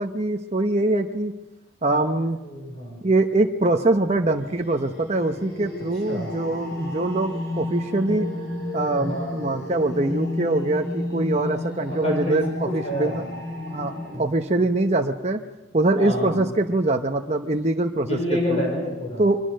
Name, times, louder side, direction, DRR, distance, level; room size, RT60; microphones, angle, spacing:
voice 1, 0.0-1.3 1.8-2.4 3.0-8.3 8.7-13.2 13.7-13.9 14.2-15.4 15.7-18.6 19.2-19.4, right 2 dB, 35° right, 4 dB, 0.8 m, -23 dB
voice 2, 2.4-3.0 6.1-6.3 8.9-9.3 11.9-13.3 14.1-14.3 16.0-16.4 18.1-19.2, equal, 30° left, 0 dB, 5.1 m, -28 dB
sound 1, 4.0-14.1, left 1 dB, 50° left, 5.4 m, -32 dB
23.5 x 21.5 x 6.5 m, 1.1 s
head